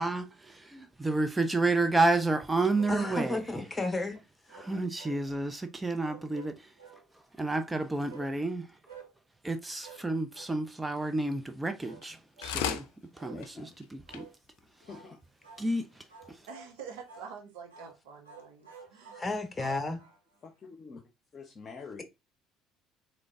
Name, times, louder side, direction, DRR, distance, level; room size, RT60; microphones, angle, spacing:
voice 1, 0.0-3.6 4.5-6.7 7.1-8.8 9.4-12.9 13.1-14.3 15.6-16.5, right 2 dB, 15° right, 0.5 m, -30 dB
sound 1, 2.7-3.5 4.5-5.5 6.0-7.0 8.1-8.3 8.9-9.1 9.8-10.1 10.3-10.6 10.9-11.2 11.8-12.1 12.4-12.6 13.2-13.4 14.1-14.3 14.8-15.1 15.4-15.7 16.1-16.7 17.1-17.3 17.7-18.0 18.2-20.4, right 6 dB, 90° right, 1.1 m, -51 dB
voice 2, 2.9-4.2 19.1-20.0, left 2 dB, 20° left, 1.2 m, -32 dB
sound 2, 12.0-12.2 12.4-12.9 13.4-13.5 13.8-13.9 14.1-14.2 14.8-14.9, left 9 dB, 75° left, 0.5 m, -33 dB
voice 3, 13.3-13.8 14.9-15.2 20.4-21.0 21.3-22.0, left 5 dB, 40° left, 0.8 m, -46 dB
voice 4, 16.5-19.2, right 6 dB, 70° right, 1.1 m, -46 dB
3.7 x 3.3 x 3.6 m
hypercardioid pair, 60°, 0 cm